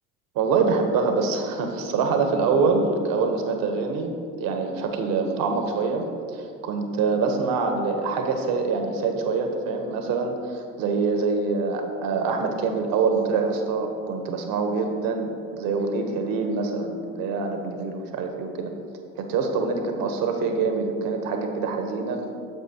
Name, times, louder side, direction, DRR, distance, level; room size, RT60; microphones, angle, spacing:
voice 1, 0.3-6.1 6.3-18.7 19.2-22.2, right 4 dB, 65° right, 5 dB, 1.1 m, -25 dB
9.3 x 7.3 x 2.9 m, 2.3 s
hypercardioid pair, 55°, 37 cm